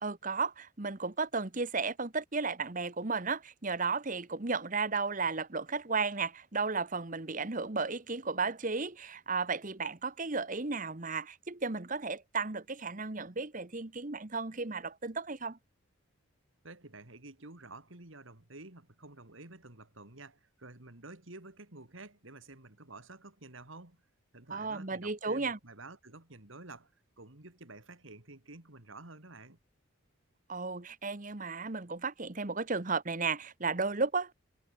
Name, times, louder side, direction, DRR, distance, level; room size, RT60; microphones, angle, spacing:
voice 1, 0.0-15.6 24.5-25.6 30.5-34.3, right 4 dB, 40° right, 1.2 m, -34 dB
voice 2, 16.6-24.0 24.3-26.9 27.2-29.6, right 2 dB, 65° right, 2.9 m, -50 dB
head